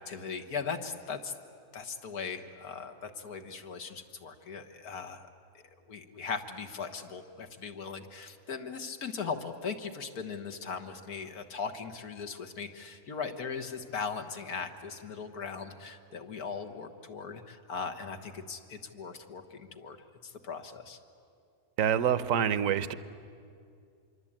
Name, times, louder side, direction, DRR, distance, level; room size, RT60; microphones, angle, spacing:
voice 1, 0.0-1.3 1.7-5.3 5.9-20.0 20.2-21.0, left 5 dB, 80° left, 6 dB, 1.8 m, -39 dB
voice 2, 21.8-22.9, right 9 dB, 65° right, 14 dB, 1.2 m, -26 dB
25.0 x 24.0 x 8.8 m, 2.4 s
omnidirectional pair, 1.6 m